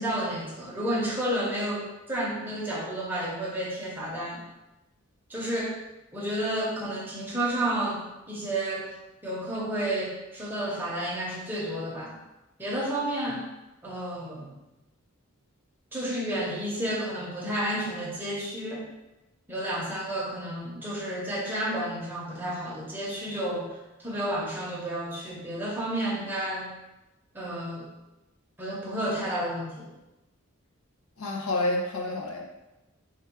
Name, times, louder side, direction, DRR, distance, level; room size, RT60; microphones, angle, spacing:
voice 1, 0.0-4.4 5.3-5.8 6.1-8.9 9.2-12.2 12.6-13.4 13.8-14.5 15.9-18.9 19.5-26.7 27.3-27.9 28.6-29.9, right 1 dB, 10° right, -5 dB, 0.8 m, -31 dB
voice 2, 31.2-32.4, left 2 dB, 85° left, 0 dB, 0.7 m, -29 dB
3.5 x 2.3 x 4.4 m, 0.99 s
head